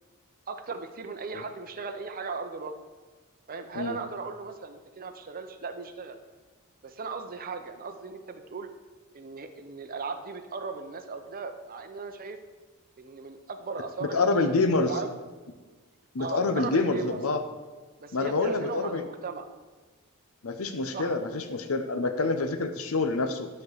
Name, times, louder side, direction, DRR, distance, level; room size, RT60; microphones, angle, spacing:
voice 1, 0.5-2.7 3.5-6.2 6.8-8.7 9.1-12.4 13.0-15.1 16.2-17.2 18.0-19.5 20.9-21.1, right 4 dB, 40° right, 7 dB, 0.7 m, -37 dB
voice 2, 14.0-14.9 16.1-17.4 18.1-19.0 20.4-23.5, left 3 dB, 65° left, 7 dB, 0.8 m, -27 dB
11.0 x 4.4 x 6.5 m, 1.3 s
head